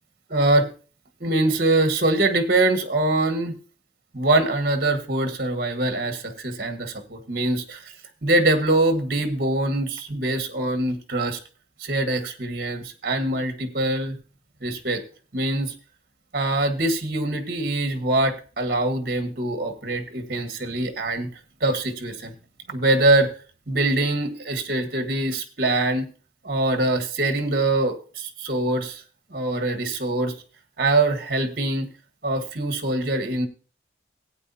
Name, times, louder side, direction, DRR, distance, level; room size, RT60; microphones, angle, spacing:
voice 1, 0.3-0.7 1.2-3.6 4.1-7.9 8.2-11.4 11.8-14.2 14.6-15.0 15.3-15.7 16.3-21.3 21.6-22.3 22.7-23.3 23.7-26.1 26.4-29.0 29.3-30.3 30.8-31.9 32.2-33.5, right 2 dB, 55° right, 6 dB, 1.5 m, -23 dB
16.5 x 8.8 x 2.8 m, 0.36 s
head